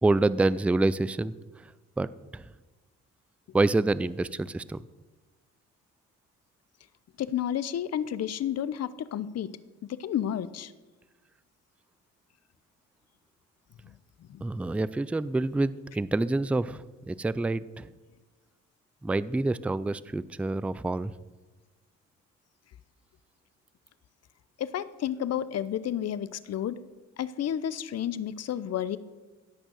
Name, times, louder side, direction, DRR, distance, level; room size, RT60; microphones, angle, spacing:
voice 1, 0.0-2.5 3.5-4.9 14.4-17.9 19.0-21.1, right 2 dB, 5° right, 17 dB, 0.3 m, -27 dB
voice 2, 7.2-9.5 9.8-10.7 13.9-14.4 24.6-26.8 27.2-29.0, left 10 dB, 55° left, 17 dB, 0.7 m, -31 dB
17.0 x 6.3 x 6.4 m, 1.2 s
cardioid pair, 90°, 30 cm